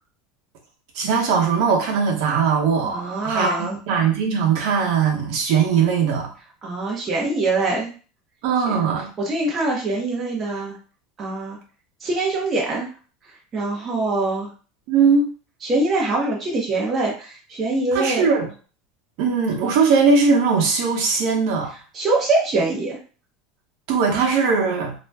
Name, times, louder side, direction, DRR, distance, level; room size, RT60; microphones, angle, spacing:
voice 1, 0.9-6.3 8.4-9.1 14.9-15.2 17.9-18.5 19.2-21.7 23.9-24.9, right 5 dB, 60° right, 0 dB, 0.8 m, -20 dB
voice 2, 2.8-3.8 6.6-7.9 8.7-8.8 9.2-10.7 11.2-11.6 12.0-12.9 13.5-14.5 15.6-18.3 21.9-23.0, right 2 dB, 20° right, -3 dB, 0.6 m, -23 dB
2.5 x 2.1 x 3.3 m, 0.38 s
supercardioid pair, 160°, 0 cm